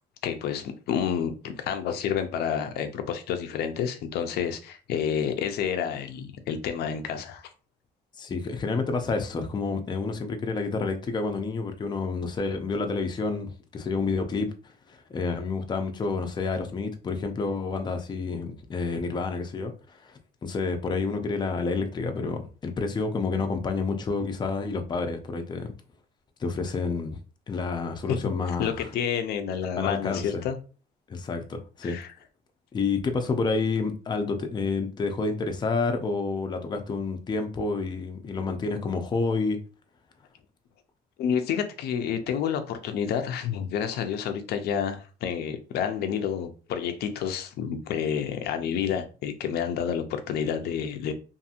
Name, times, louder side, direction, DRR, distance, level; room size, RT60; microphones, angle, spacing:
voice 1, 0.2-7.5 28.6-30.6 31.8-32.1 41.2-51.1, left 8 dB, 70° left, 0.5 m, -29 dB
voice 2, 8.2-25.7 26.4-27.2 27.5-28.9 29.8-30.4 31.1-32.0 32.7-39.6, left 4 dB, 25° left, 0.5 m, -29 dB
2.7 x 2.6 x 2.4 m
cardioid pair, 110°, 17 cm